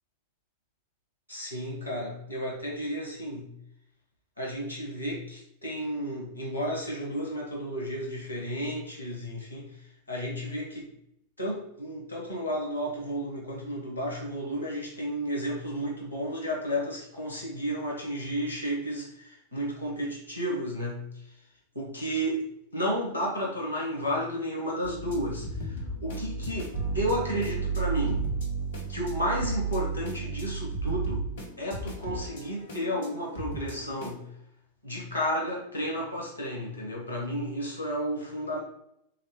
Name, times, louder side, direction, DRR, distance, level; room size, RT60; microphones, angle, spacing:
voice 1, 1.3-3.5 4.4-9.8 10.1-10.9 11.4-21.0 21.7-22.5 22.7-28.3 28.9-31.3 31.6-34.2 34.8-38.6, equal, 90° right, -2 dB, 1.5 m, -32 dB
sound 1, 24.8-34.2, right 4 dB, 60° left, 1.0 m, -33 dB
3.9 x 3.2 x 3.1 m, 0.76 s
figure-of-eight pair, 90°, 0 cm